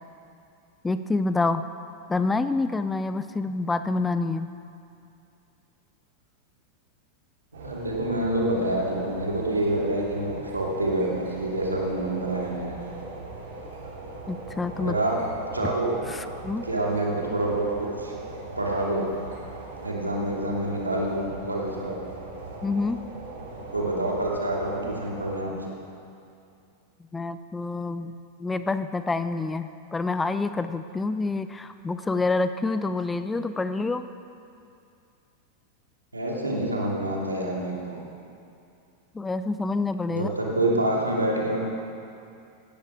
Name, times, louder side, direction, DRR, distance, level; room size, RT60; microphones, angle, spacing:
voice 1, 0.8-1.6 2.1-4.5 14.3-15.0 16.1-16.2 16.4-16.6 22.6-23.0 27.1-28.1 28.4-34.0 39.1-40.3, left 3 dB, 10° left, 11 dB, 0.5 m, -27 dB
sound 1, 7.5-25.3, right 2 dB, 60° right, 3.5 m, -40 dB
voice 2, 7.5-12.8 14.8-15.2 15.5-16.0 16.6-18.2 18.6-19.1 19.8-22.0 23.7-25.7 36.1-38.0 40.1-41.6, right 1 dB, 80° right, -3 dB, 2.8 m, -27 dB
17.0 x 12.0 x 4.9 m, 2.5 s
figure-of-eight pair, 90°, 0 cm